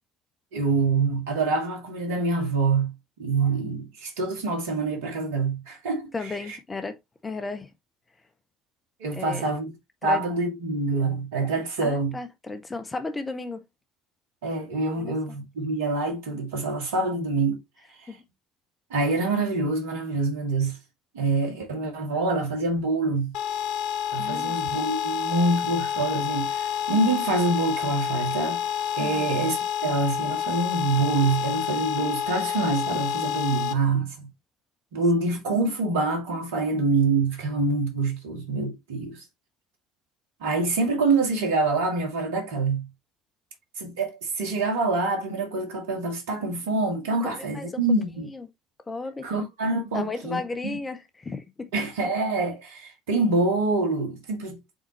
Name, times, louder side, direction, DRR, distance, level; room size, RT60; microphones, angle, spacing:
voice 1, 0.5-2.9 3.2-6.1 9.0-9.7 10.0-12.1 14.4-17.6 18.9-20.8 21.1-23.3 24.1-28.6 29.0-29.6 29.8-34.3 34.9-39.2 40.4-42.9 43.8-48.3 49.2-50.8 51.7-54.6, right 3 dB, 65° right, 2.1 m, -26 dB
voice 2, 6.1-7.7 9.1-9.5 10.0-10.2 11.8-13.6 15.0-15.4 18.1-18.2 24.2-24.6 29.0-29.3 35.3-35.4 47.2-47.8 48.3-48.5 48.9-49.3 49.9-51.7, left 3 dB, 20° left, 1.3 m, -34 dB
sound 1, 23.3-33.7, left 9 dB, 60° left, 0.7 m, -28 dB
7.6 x 4.3 x 3.0 m
figure-of-eight pair, 55°, 0 cm